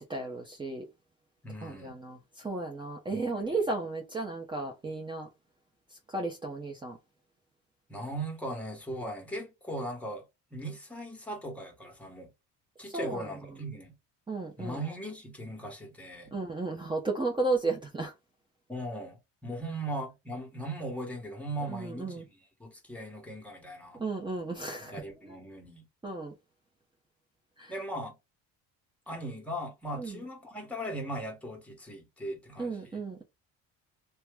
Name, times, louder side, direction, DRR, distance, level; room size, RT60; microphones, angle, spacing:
voice 1, 0.1-0.8 1.6-5.3 6.1-7.0 12.9-13.2 14.3-14.8 16.3-18.1 21.7-22.2 24.0-24.9 25.2-25.3 26.0-26.3 27.6-27.7 29.9-30.2 32.6-33.2, right 3 dB, 15° right, 0.8 m, -34 dB
voice 2, 1.4-1.9 3.1-3.6 7.9-10.2 10.5-12.3 12.8-13.9 14.6-16.3 18.7-24.0 24.8-25.8 27.7-28.2 29.1-33.0, right 1 dB, 5° left, 1.5 m, -39 dB
2.9 x 2.3 x 3.5 m
cardioid pair, 100°, 32 cm